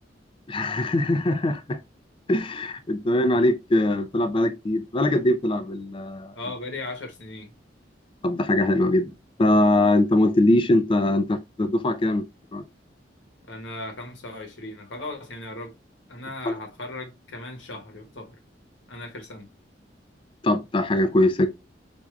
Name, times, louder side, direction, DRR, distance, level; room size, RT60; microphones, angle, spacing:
voice 1, 0.5-1.8 2.3-6.3 8.2-9.1 9.4-12.2 12.5-12.6 16.4-16.5 20.4-21.5, left 1 dB, 30° left, 0.4 m, -22 dB
voice 2, 6.3-7.5 13.5-15.7 16.1-18.4 18.9-19.5, left 2 dB, 80° left, 1.0 m, -37 dB
4.5 x 2.6 x 2.4 m
head